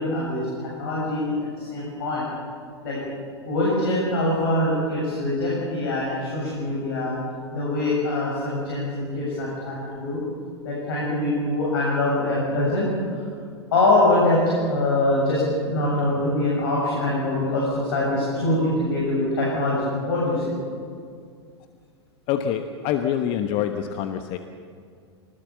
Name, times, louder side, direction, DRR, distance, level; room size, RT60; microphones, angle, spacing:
voice 1, 0.0-2.2 2.8-3.0 3.5-7.2 7.5-10.2 10.6-12.9 13.7-15.4 15.7-20.4, left 2 dB, 60° left, -4 dB, 7.6 m, -23 dB
voice 2, 22.3-24.4, left 9 dB, 40° left, 7 dB, 1.2 m, -25 dB
25.5 x 20.0 x 7.3 m, 2.2 s
figure-of-eight pair, 90°, 14 cm